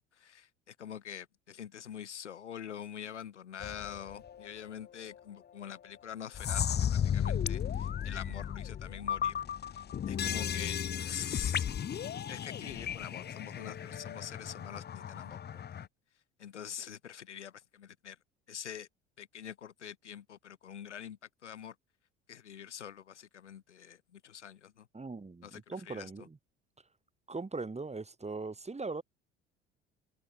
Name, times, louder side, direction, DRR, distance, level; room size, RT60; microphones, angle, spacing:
voice 1, 0.0-9.4 9.7-11.7 12.3-15.9 16.4-18.2 18.5-18.9 19.2-21.7 22.3-24.9 25.4-26.1, left 9 dB, 85° left, 2.8 m, -45 dB
sound 1, 3.6-4.6 5.1-5.2 5.6-5.7 6.3-15.9, left 9 dB, 30° left, 0.9 m, -35 dB
voice 2, 24.9-26.4 27.3-29.0, right 3 dB, 20° right, 7.6 m, -40 dB
hypercardioid pair, 65°, 34 cm